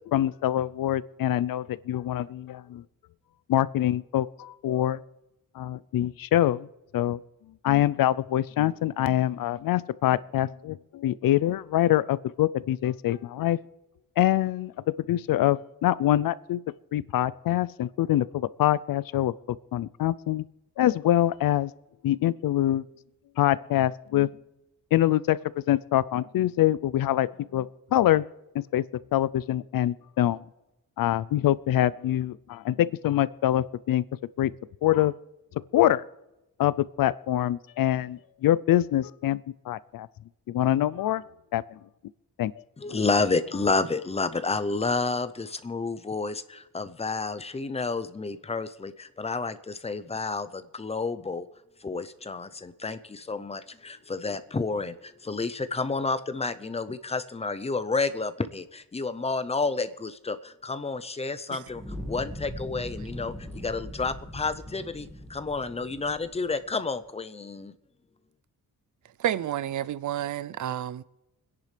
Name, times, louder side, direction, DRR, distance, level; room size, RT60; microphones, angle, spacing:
voice 1, 0.1-2.8 3.5-5.0 5.6-6.7 6.9-7.2 7.6-13.6 14.2-14.7 15.1-16.6 16.9-19.3 19.7-20.4 20.8-21.7 22.0-22.8 23.4-24.3 24.9-25.4 25.7-28.2 28.5-28.8 29.1-30.4 31.0-34.0 34.4-34.5 34.8-35.1 35.7-36.0 36.6-39.4 39.7-40.1 40.5-41.2 41.5-41.6 42.4-42.5 42.9-43.0, left 13 dB, 75° left, 0.5 m, -24 dB
voice 2, 42.8-51.5 51.8-67.7, left 4 dB, 20° left, 0.6 m, -30 dB
Fire, 61.6-66.8, equal, ahead, 1.8 m, -40 dB
voice 3, 69.2-71.0, right 11 dB, 60° right, 0.5 m, -30 dB
29.0 x 10.5 x 3.3 m
wide cardioid pair, 160°, 34 cm